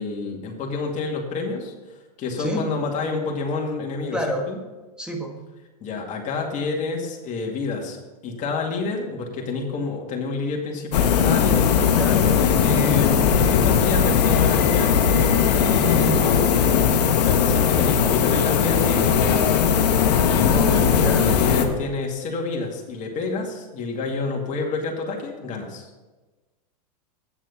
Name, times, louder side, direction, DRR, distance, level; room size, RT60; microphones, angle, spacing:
voice 1, 0.0-1.7 2.2-4.6 5.8-12.0 12.4-19.7 20.3-25.9, left 3 dB, 35° left, 0 dB, 2.3 m, -29 dB
voice 2, 2.4-2.7 4.1-4.5 5.0-5.4 11.9-12.3 15.8-16.3 20.5-21.3, right 1 dB, 5° right, 2 dB, 1.6 m, -28 dB
sound 1, 10.9-21.7, left 7 dB, 80° left, 1.3 m, -19 dB
8.7 x 7.3 x 5.8 m, 1.2 s
hypercardioid pair, 115°, 21 cm